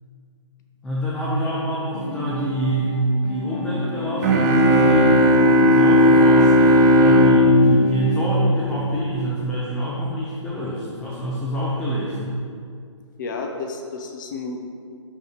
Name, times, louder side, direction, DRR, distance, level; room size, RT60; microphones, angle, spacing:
voice 1, 0.8-5.2 5.6-12.4, right 1 dB, 5° left, -6 dB, 0.5 m, -25 dB
sound 1, 1.9-8.5, left 2 dB, 65° left, 1.7 m, -30 dB
sound 2, 4.2-8.9, equal, 30° right, 0.8 m, -15 dB
voice 2, 13.2-14.6, left 4 dB, 40° left, 3 dB, 0.8 m, -31 dB
6.5 x 5.4 x 4.6 m, 2.3 s
hypercardioid pair, 145°, 16 cm